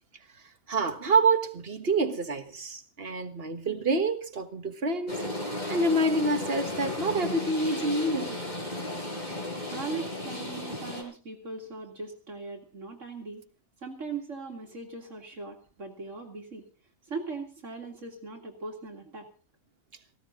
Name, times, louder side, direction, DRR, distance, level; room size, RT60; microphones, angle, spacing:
voice 1, 0.7-5.2 5.7-8.4, right 2 dB, 50° right, 1.7 m, -27 dB
sound 1, 5.1-11.0, left 1 dB, 30° left, 5.0 m, -34 dB
voice 2, 9.7-13.4 13.8-16.7 17.1-19.3, right 4 dB, 65° right, 2.6 m, -39 dB
18.5 x 16.5 x 3.8 m
omnidirectional pair, 1.4 m